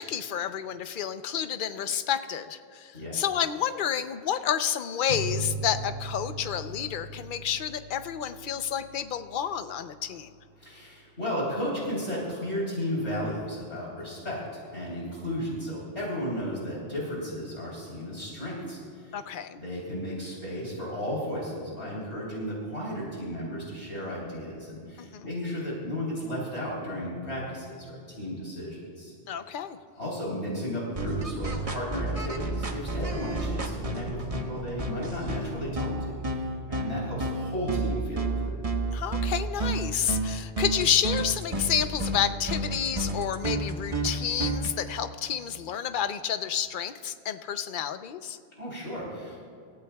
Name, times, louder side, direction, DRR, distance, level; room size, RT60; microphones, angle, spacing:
voice 1, 0.0-10.3 19.1-19.6 25.0-25.3 29.3-29.8 38.9-48.4, left 9 dB, 55° left, 10 dB, 0.8 m, -30 dB
sound 1, 5.1-10.2, right 2 dB, 90° right, 1.5 m, -38 dB
voice 2, 10.6-19.3 19.6-29.1 30.0-38.6 48.5-49.4, equal, 75° left, -6 dB, 4.1 m, -34 dB
sound 2, 31.0-44.7, right 2 dB, 30° right, 1.2 m, -30 dB
27.0 x 15.0 x 2.3 m, 2.5 s
omnidirectional pair, 1.2 m